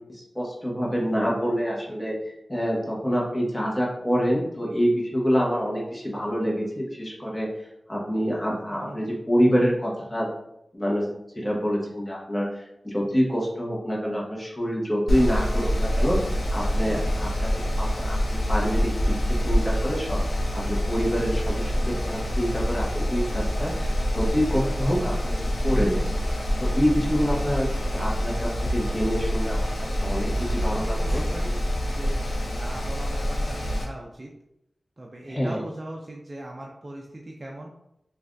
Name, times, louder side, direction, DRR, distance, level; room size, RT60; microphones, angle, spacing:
voice 1, 0.3-7.5 7.9-10.3 10.7-11.0 11.3-17.5 17.8-25.3 25.6-26.0 26.6-27.7 27.9-31.2 35.3-35.6, equal, 20° left, -4 dB, 1.0 m, -26 dB
voice 2, 8.7-9.2 16.8-17.7 24.5-25.8 30.6-34.3 35.0-37.7, right 1 dB, 40° right, -1 dB, 0.4 m, -40 dB
Mechanical fan, 15.1-33.8, equal, 80° left, 0.5 m, -26 dB
3.2 x 2.3 x 2.5 m, 0.81 s
wide cardioid pair, 55°, 0 cm